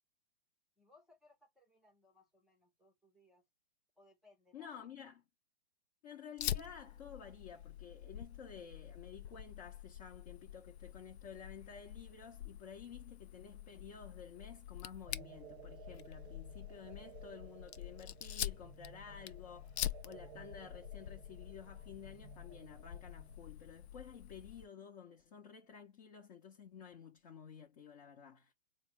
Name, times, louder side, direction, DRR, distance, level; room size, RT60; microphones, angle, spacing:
voice 1, 0.8-3.5 4.0-4.9, left 2 dB, ahead, 0.7 m, -67 dB
voice 2, 4.5-5.2 6.0-28.5, left 7 dB, 35° left, 0.8 m, -52 dB
Fire, 6.4-24.7, left 11 dB, 75° left, 0.5 m, -46 dB
sound 1, 15.1-23.4, right 13 dB, 45° right, 0.5 m, -58 dB
3.9 x 2.0 x 3.1 m
hypercardioid pair, 145°, 33 cm